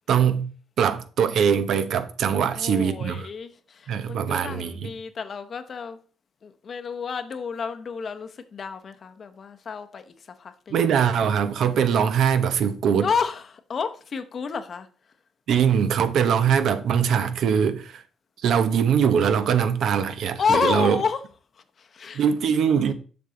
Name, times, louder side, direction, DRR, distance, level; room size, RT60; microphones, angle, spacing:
voice 1, 0.1-0.5 0.8-3.3 3.9-4.9 10.7-13.1 15.5-18.0 18.4-21.0 22.1-22.9, right 7 dB, 70° right, 0.8 m, -22 dB
voice 2, 2.4-6.0 6.4-10.1 10.4-10.8 13.0-14.9 20.4-21.2 21.8-22.2, left 6 dB, 50° left, 0.8 m, -30 dB
6.9 x 6.0 x 3.8 m
cardioid pair, 90°, 0 cm